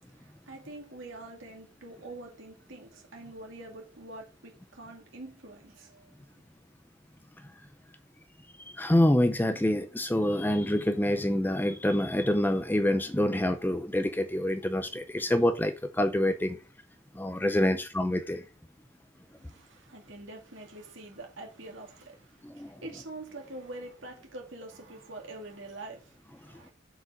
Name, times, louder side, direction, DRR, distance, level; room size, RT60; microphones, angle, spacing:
voice 1, 0.1-6.1 19.3-26.7, right 2 dB, 70° right, 2.6 m, -45 dB
voice 2, 8.8-16.6 17.2-18.4 22.4-22.7, left 1 dB, 10° left, 0.5 m, -26 dB
6.1 x 5.0 x 5.1 m
head